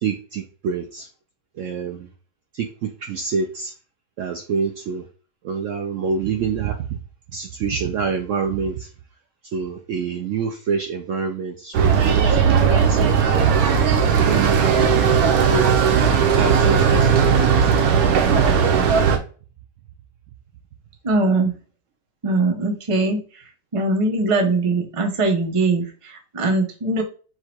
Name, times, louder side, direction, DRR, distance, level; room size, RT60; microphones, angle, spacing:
voice 1, 0.0-1.1 1.6-2.1 2.5-3.7 4.2-5.0 5.4-7.0 7.3-8.9 9.5-13.1 14.2-14.8 15.5-15.8 16.4-17.7, right 5 dB, 90° right, 4 dB, 0.6 m, -26 dB
sound 1, 11.7-19.2, right 6 dB, 65° right, 1.1 m, -17 dB
voice 2, 21.0-21.5 22.2-23.2 23.7-27.0, right 2 dB, 40° right, 2 dB, 0.5 m, -21 dB
4.6 x 2.3 x 4.3 m, 0.38 s
omnidirectional pair, 1.9 m